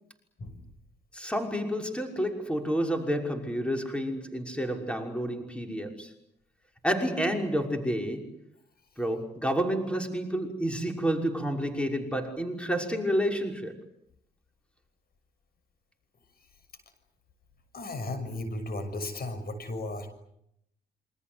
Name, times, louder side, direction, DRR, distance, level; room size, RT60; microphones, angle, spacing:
voice 1, 1.1-6.1 6.8-8.3 9.0-13.7, equal, 5° left, 5.9 m, -29 dB
voice 2, 17.7-20.1, left 2 dB, 50° left, 6.5 m, -35 dB
28.0 x 25.5 x 8.1 m
hypercardioid pair, 50°, 20 cm